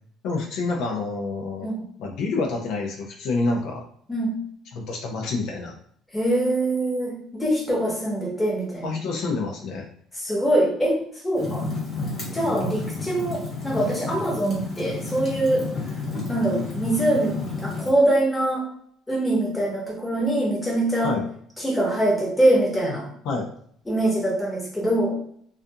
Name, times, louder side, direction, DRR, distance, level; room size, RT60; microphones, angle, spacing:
voice 1, 0.2-3.8 4.7-5.7 8.8-9.9 21.0-21.2 23.3-23.5, left 3 dB, 70° left, 1 dB, 0.4 m, -28 dB
voice 2, 6.1-8.9 10.1-11.0 11.2-11.6 12.3-15.6 16.3-18.6 19.1-21.1 21.6-23.1 23.9-25.2, right 1 dB, 10° left, -3 dB, 0.9 m, -23 dB
Fire, 11.3-17.9, left 3 dB, 35° left, 1.3 m, -31 dB
2.4 x 2.3 x 2.7 m, 0.62 s
cardioid pair, 120°, 0 cm